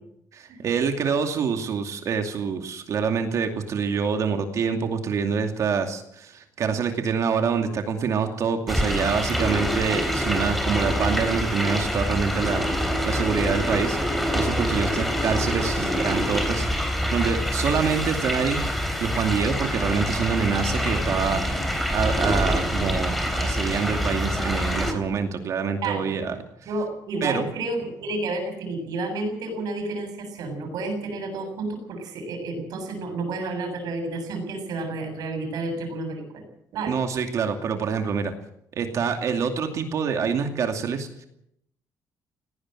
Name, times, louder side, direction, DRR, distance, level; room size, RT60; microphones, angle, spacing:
voice 1, 0.3-14.0 14.3-18.6 19.0-21.4 21.9-26.4 27.2-27.5 36.9-38.3 38.8-41.1, right 6 dB, 50° right, 5 dB, 2.6 m, -26 dB
sound 1, 8.7-24.9, equal, ahead, 3.5 m, -25 dB
voice 2, 25.8-26.2 26.7-36.4 36.7-37.0, right 2 dB, 65° right, 6 dB, 7.3 m, -30 dB
19.0 x 18.0 x 7.8 m, 0.74 s
cardioid pair, 160°, 7 cm